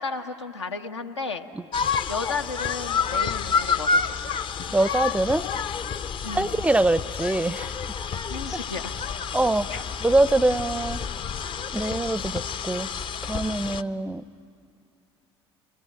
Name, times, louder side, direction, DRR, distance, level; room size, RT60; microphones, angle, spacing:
voice 1, 0.0-1.4 2.1-4.4 6.2-6.6 8.3-8.9 9.7-9.8, left 4 dB, 85° left, 6 dB, 1.0 m, -33 dB
sound 1, 1.7-13.8, left 5 dB, 35° left, 0.6 m, -29 dB
voice 2, 4.7-5.5 6.4-7.7 9.3-9.7 10.0-11.0 11.7-12.9 13.3-14.2, right 2 dB, 10° right, 19 dB, 0.5 m, -23 dB
23.5 x 18.0 x 9.2 m, 2.4 s
figure-of-eight pair, 65°, 14 cm